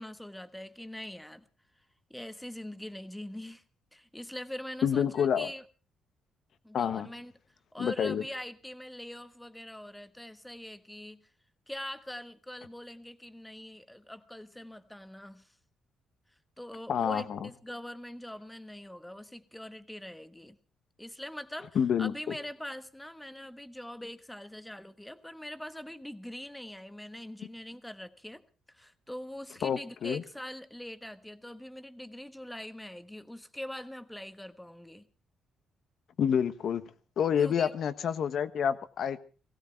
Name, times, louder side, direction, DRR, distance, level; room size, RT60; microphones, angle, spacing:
voice 1, 0.0-1.4 2.1-3.6 3.9-5.6 6.6-7.3 7.7-11.2 11.7-15.5 16.6-20.6 21.0-28.4 28.7-35.1 37.4-37.8, left 1 dB, 5° left, 1.4 m, -43 dB
voice 2, 4.8-5.5 6.7-7.1 7.8-8.2 16.9-17.5 21.7-22.4 29.6-30.2 36.2-36.8 37.2-39.2, left 8 dB, 65° left, 1.3 m, -28 dB
18.5 x 16.5 x 4.5 m
cardioid pair, 90°, 0 cm